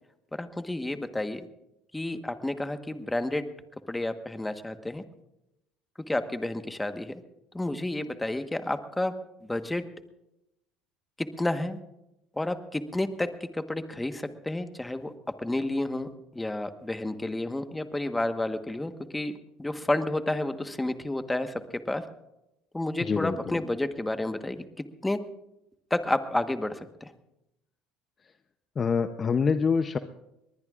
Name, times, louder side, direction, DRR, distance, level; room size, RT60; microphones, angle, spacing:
voice 1, 0.4-1.5 1.9-3.5 3.9-5.0 6.1-7.1 7.5-9.1 9.5-9.8 11.4-11.8 12.4-13.3 13.7-15.1 15.4-21.5 21.9-22.0 22.7-24.6 25.0-25.2 25.9-26.8, left 1 dB, 10° left, 8 dB, 1.3 m, -30 dB
voice 2, 23.0-23.6 28.8-30.0, left 5 dB, 35° left, 9 dB, 0.7 m, -26 dB
22.0 x 19.5 x 2.5 m, 0.88 s
supercardioid pair, 90°, 0 cm